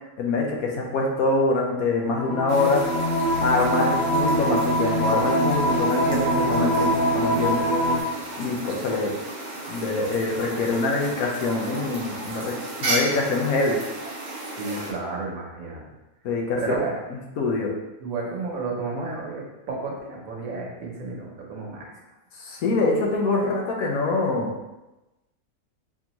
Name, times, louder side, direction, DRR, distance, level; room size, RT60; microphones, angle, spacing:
voice 1, 0.2-2.8 3.4-8.0 8.4-9.1 9.7-12.5 12.8-13.8 16.2-16.8 17.4-17.7 22.4-24.5, left 3 dB, 80° left, 0 dB, 1.2 m, -24 dB
sound 1, 2.1-8.0, equal, 35° left, 0.8 m, -23 dB
sound 2, 2.5-14.9, right 2 dB, 45° right, 0.6 m, -34 dB
voice 2, 14.5-15.8 16.6-17.0 18.0-21.9, right 4 dB, 70° right, -1 dB, 1.2 m, -32 dB
4.3 x 2.8 x 2.9 m, 1.0 s
omnidirectional pair, 1.5 m